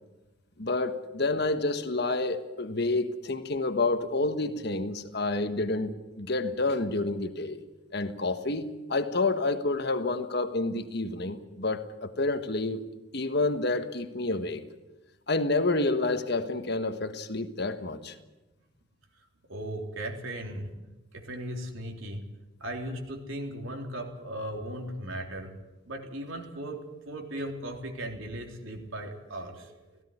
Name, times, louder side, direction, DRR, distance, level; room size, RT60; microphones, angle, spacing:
voice 1, 0.6-7.6 7.9-12.8 13.1-14.6 15.3-18.1, left 2 dB, 50° left, 1.4 m, -29 dB
voice 2, 19.5-20.7 21.1-22.2 22.6-25.5 25.9-26.8 27.1-29.8, right 1 dB, 70° right, 3.6 m, -37 dB
17.5 x 16.5 x 9.9 m
head